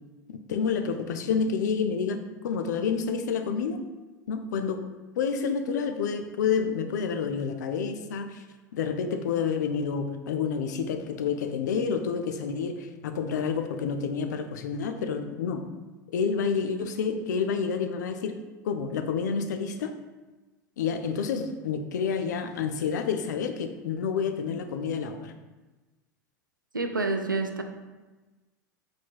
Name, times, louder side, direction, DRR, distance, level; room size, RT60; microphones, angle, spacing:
voice 1, 0.3-3.8 4.3-4.8 5.2-8.4 8.7-15.6 16.1-18.4 18.6-19.9 20.8-25.3, left 6 dB, 65° left, 7 dB, 0.4 m, -29 dB
voice 2, 26.7-27.6, right 3 dB, 90° right, 6 dB, 0.4 m, -28 dB
4.4 x 4.3 x 2.3 m, 1.2 s
figure-of-eight pair, 85°, 10 cm